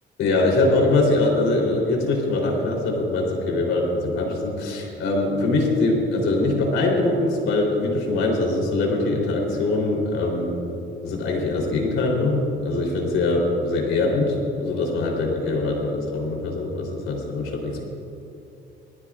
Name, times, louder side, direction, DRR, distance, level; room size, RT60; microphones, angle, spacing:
voice 1, 0.2-10.5 11.0-14.3 14.6-17.8, left 2 dB, 85° left, -1 dB, 3.5 m, -22 dB
20.0 x 14.5 x 2.5 m, 2.9 s
cardioid pair, 90°, 20 cm